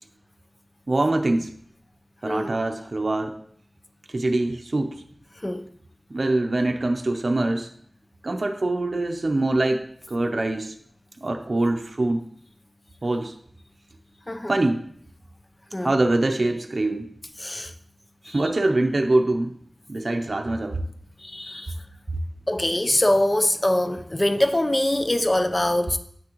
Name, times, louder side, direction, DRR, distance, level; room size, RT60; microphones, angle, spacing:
voice 1, 0.9-1.5 2.2-3.4 4.1-5.0 6.1-7.7 8.2-10.7 11.2-12.2 13.0-13.3 14.5-14.8 15.8-17.1 18.3-19.5 19.9-20.8, right 2 dB, 65° right, 0.6 m, -24 dB
voice 2, 2.2-2.5 5.4-5.6 14.3-14.5 15.7-15.9 17.4-17.7 18.2-18.4 21.2-21.7 22.5-26.0, left 1 dB, 30° left, 0.6 m, -23 dB
8.5 x 6.1 x 3.0 m
wide cardioid pair, 60°, 0 cm